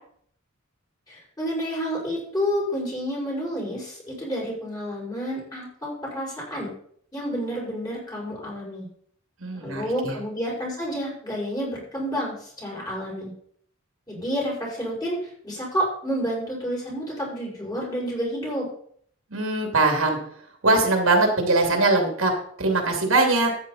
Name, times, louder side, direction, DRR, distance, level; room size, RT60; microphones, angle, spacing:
voice 1, 1.1-6.7 7.1-8.9 9.5-13.3 14.1-18.7, equal, 20° left, -5 dB, 6.0 m, -29 dB
voice 2, 9.4-10.1 19.3-20.2 20.6-22.3 22.6-23.5, right 2 dB, 75° right, 2 dB, 2.8 m, -21 dB
13.0 x 9.2 x 4.3 m, 0.62 s
head